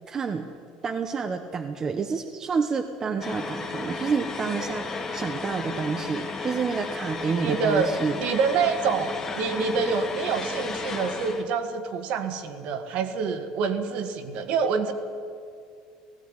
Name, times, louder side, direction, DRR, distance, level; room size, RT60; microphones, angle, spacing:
voice 1, 0.1-0.5 0.8-8.2, right 5 dB, 20° right, 5 dB, 0.9 m, -29 dB
sound 1, 3.2-11.4, left 4 dB, 20° left, 1.7 m, -34 dB
voice 2, 7.3-7.9 8.2-14.9, right 5 dB, 50° right, 8 dB, 1.7 m, -26 dB
17.0 x 16.0 x 9.7 m, 2.3 s
cardioid pair, 165°, 2 cm